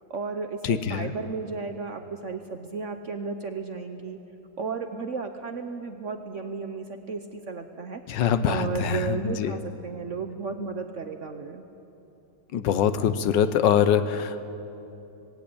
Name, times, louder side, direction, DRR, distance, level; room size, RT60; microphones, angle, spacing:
voice 1, 0.1-4.2 4.6-11.6, right 4 dB, 55° right, 7 dB, 0.9 m, -34 dB
voice 2, 0.6-1.1 8.1-9.6 12.5-14.4, left 8 dB, 75° left, 11 dB, 1.4 m, -24 dB
18.5 x 17.0 x 8.5 m, 2.9 s
omnidirectional pair, 2.1 m